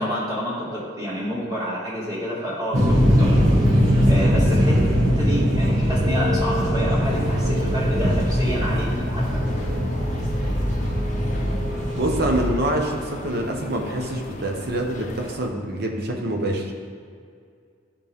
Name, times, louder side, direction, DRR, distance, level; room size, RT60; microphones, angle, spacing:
voice 1, 0.0-3.3 4.1-4.8 5.1-9.2, equal, 20° right, -7 dB, 2.1 m, -28 dB
sound 1, 2.7-12.5, equal, 70° right, 2.2 m, -20 dB
sound 2, 7.0-15.5, left 2 dB, 35° left, 0.6 m, -38 dB
voice 2, 12.0-16.7, right 1 dB, 50° right, 2 dB, 1.1 m, -25 dB
13.0 x 5.3 x 3.6 m, 2.2 s
head